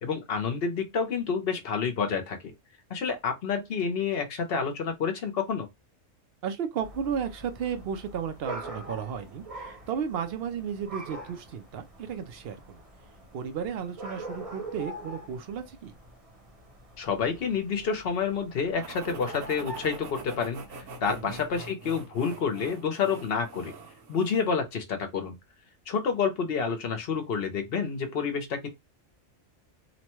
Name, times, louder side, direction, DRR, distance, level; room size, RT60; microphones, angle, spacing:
voice 1, 0.0-2.5 2.9-5.7 17.0-23.7 24.1-25.3 25.9-28.7, left 6 dB, 55° left, 0.8 m, -29 dB
voice 2, 6.4-12.8 13.3-15.9 21.1-21.3, right 7 dB, 65° right, 0.6 m, -34 dB
sound 1, 6.8-21.6, right 1 dB, 30° right, 0.8 m, -44 dB
sound 2, 18.8-24.6, right 3 dB, 80° right, 1.2 m, -44 dB
2.9 x 2.2 x 2.9 m
omnidirectional pair, 1.3 m